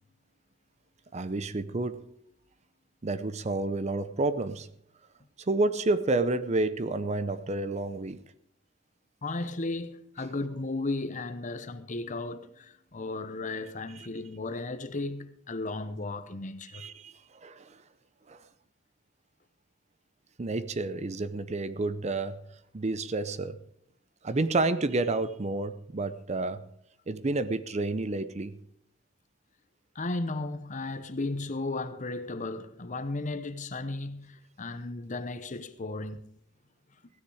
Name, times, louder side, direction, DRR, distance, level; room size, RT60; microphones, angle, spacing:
voice 1, 1.1-2.1 3.0-4.7 5.5-8.2 14.0-14.1 16.7-17.1 17.4-17.8 18.3-18.4 20.4-22.4 22.7-23.6 24.2-26.6 27.1-28.5, right 2 dB, 35° right, 0.6 m, -30 dB
voice 2, 9.2-16.9 29.9-36.2, left 2 dB, 40° left, 0.8 m, -35 dB
15.5 x 10.0 x 4.8 m
head